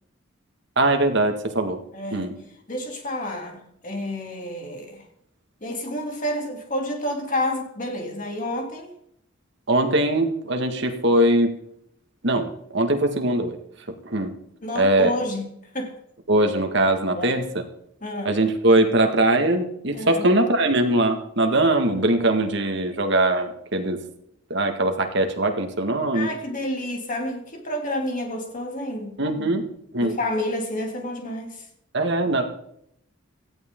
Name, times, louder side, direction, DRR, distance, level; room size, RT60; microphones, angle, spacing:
voice 1, 0.8-1.8 2.1-2.3 9.7-11.6 12.2-13.6 14.0-14.3 14.8-15.1 16.3-17.4 18.3-24.0 24.5-26.3 29.2-29.7 29.9-30.2 31.9-32.5, right 1 dB, 60° right, 5 dB, 2.0 m, -21 dB
voice 2, 1.9-2.3 2.7-5.1 5.6-8.9 14.6-15.5 15.7-16.0 17.2-17.4 18.0-18.4 19.9-20.2 26.1-29.2 30.0-31.7, left 1 dB, 40° left, 2 dB, 3.0 m, -29 dB
18.0 x 14.0 x 3.9 m, 0.71 s
head